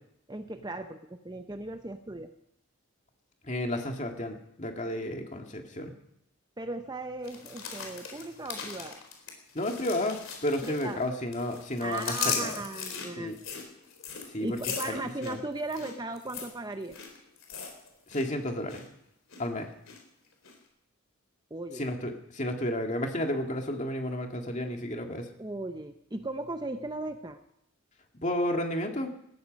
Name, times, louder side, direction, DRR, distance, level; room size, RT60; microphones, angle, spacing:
voice 1, 0.3-2.3 6.6-9.0 10.6-11.0 11.8-13.4 14.4-17.0 21.5-21.9 25.4-27.4, right 2 dB, 20° right, 7 dB, 0.7 m, -37 dB
voice 2, 3.4-5.9 9.5-12.6 13.2-13.3 14.3-14.6 14.8-15.4 18.1-18.8 19.4-19.7 21.8-25.3 28.2-29.1, left 1 dB, 30° left, 3 dB, 2.1 m, -32 dB
sound 1, 7.2-11.1 11.3-18.3 18.5-18.9 19.3-20.0 20.4-20.5, left 6 dB, 60° left, 3.9 m, -38 dB
19.0 x 14.5 x 5.3 m, 0.77 s
head